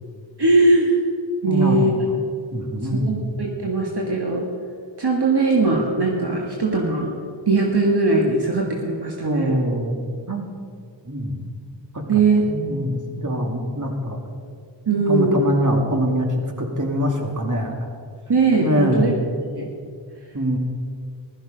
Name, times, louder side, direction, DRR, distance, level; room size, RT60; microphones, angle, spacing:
voice 1, 0.4-1.0 1.4-1.9 2.9-4.5 5.0-7.1 7.5-9.6 12.1-12.4 14.9-15.4 18.3-19.1 19.5-19.7, right 3 dB, 60° right, -1 dB, 1.7 m, -20 dB
voice 2, 1.5-2.1 2.5-3.2 9.2-9.9 10.3-10.4 11.1-11.4 11.9-12.0 12.5-14.2 14.9-17.9 18.6-19.1 20.3-20.6, equal, 40° right, 2 dB, 2.2 m, -24 dB
16.0 x 12.5 x 5.1 m, 2.2 s
wide cardioid pair, 55°, 45 cm